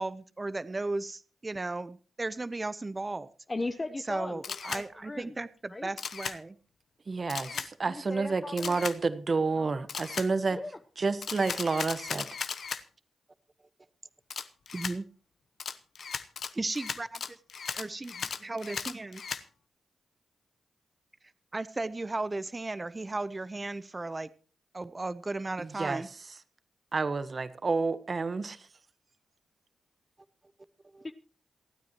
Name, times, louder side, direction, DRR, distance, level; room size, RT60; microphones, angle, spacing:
voice 1, 0.0-3.3 4.1-6.6 14.7-15.0 16.5-17.4 17.7-19.2 21.5-24.3 24.7-26.1 30.9-31.1, right 2 dB, 30° right, 15 dB, 0.7 m, -35 dB
voice 2, 3.5-5.4 5.7-5.9 7.5-8.9 9.5-9.8 10.5-10.8 31.0-31.1, left 2 dB, 30° left, 9 dB, 0.9 m, -38 dB
Camera, 4.4-4.8 6.0-6.4 7.3-7.7 8.6-9.0 9.9-10.3 11.2-12.8 14.3-15.0 15.6-19.4, left 6 dB, 70° left, 0.9 m, -36 dB
voice 3, 7.1-10.6 11.0-12.3 25.6-26.0 26.9-28.6, right 4 dB, 45° right, 13 dB, 1.2 m, -29 dB
28.0 x 9.5 x 3.0 m, 0.38 s
cardioid pair, 60°, 0 cm